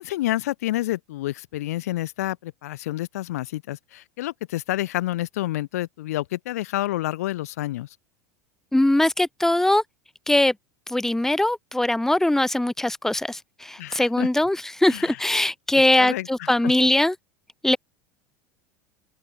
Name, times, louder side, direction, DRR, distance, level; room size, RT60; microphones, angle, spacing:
voice 1, 0.0-7.9 13.8-14.3 14.9-15.2 16.0-16.7, left 15 dB, 65° left, 3.7 m, -29 dB
voice 2, 8.7-9.8 10.3-10.5 10.9-17.1 17.6-17.8, left 1 dB, 5° left, 1.4 m, -21 dB
open air
figure-of-eight pair, 75°, 9 cm